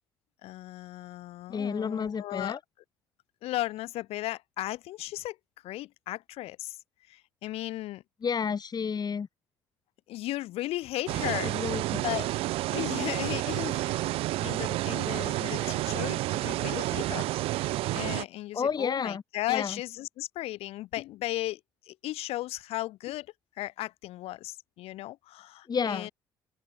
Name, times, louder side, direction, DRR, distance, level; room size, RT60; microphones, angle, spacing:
voice 1, 0.4-2.6 3.4-5.4 5.6-6.8 7.1-8.0 10.1-11.6 11.9-12.3 12.6-17.3 17.5-21.6 21.9-23.3 23.6-26.1, left 16 dB, 65° left, 5.6 m, -36 dB
voice 2, 1.5-2.6 8.2-9.3 11.4-12.0 15.4-15.7 18.5-19.2 19.5-19.8 25.7-26.1, left 6 dB, 35° left, 1.9 m, -31 dB
sound 1, 11.1-18.2, right 17 dB, 60° right, 0.4 m, -30 dB
open air
figure-of-eight pair, 45°, 11 cm